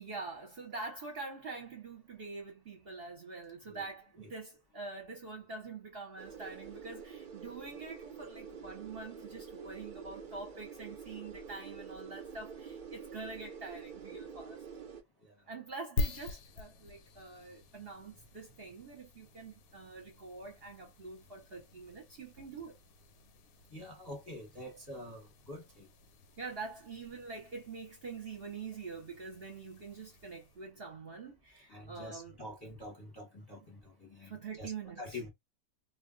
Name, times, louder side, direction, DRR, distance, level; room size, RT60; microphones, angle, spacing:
voice 1, 0.0-14.6 15.5-22.8 26.4-32.4 34.3-35.2, right 4 dB, 50° right, 0.8 m, -45 dB
sound 1, 6.2-15.0, right 6 dB, 65° right, 0.4 m, -47 dB
sound 2, 16.0-30.7, left 2 dB, 75° left, 1.0 m, -45 dB
voice 2, 23.7-25.9 31.7-34.7 35.0-35.3, left 1 dB, 20° left, 0.8 m, -46 dB
2.3 x 2.2 x 3.7 m
omnidirectional pair, 1.6 m